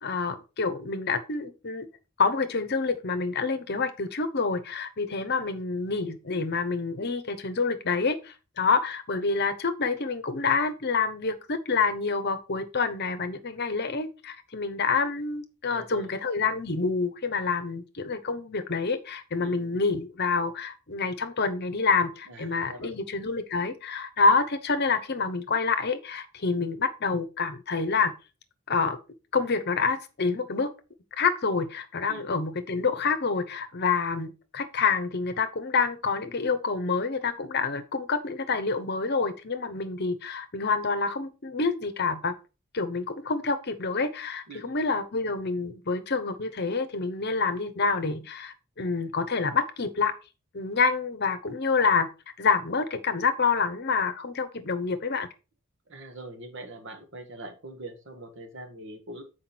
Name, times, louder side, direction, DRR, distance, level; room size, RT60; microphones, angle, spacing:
voice 1, 0.0-1.9 2.2-28.1 28.7-29.0 29.3-30.7 31.2-42.3 42.7-50.1 50.5-52.1 52.4-55.3, left 4 dB, 50° left, 0.8 m, -27 dB
voice 2, 15.7-16.1 19.4-19.6 22.3-22.9 32.1-32.3 44.5-44.7 55.9-59.2, right 2 dB, 60° right, 1.5 m, -43 dB
7.7 x 4.8 x 4.2 m
head